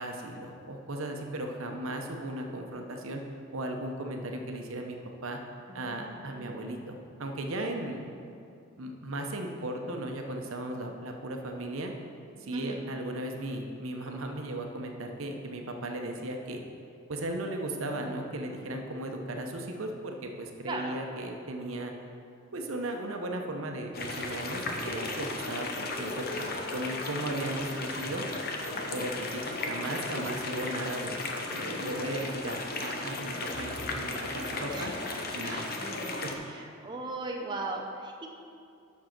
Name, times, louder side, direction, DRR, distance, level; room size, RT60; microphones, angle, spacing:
voice 1, 0.0-3.2 3.5-5.0 5.2-5.4 5.7-8.1 8.8-11.9 12.4-16.6 17.1-21.9 22.5-28.2 28.9-31.2 31.5-34.9 35.3-35.7 36.2-36.3, right 1 dB, 75° right, 3 dB, 0.9 m, -36 dB
voice 2, 5.7-6.6 12.5-12.8 20.7-21.0 34.7-35.1 35.4-36.2 36.5-38.3, right 2 dB, 20° right, 1 dB, 0.5 m, -39 dB
sound 1, 23.9-36.3, left 2 dB, 45° left, 0.8 m, -35 dB
7.4 x 6.3 x 5.9 m, 2.5 s
head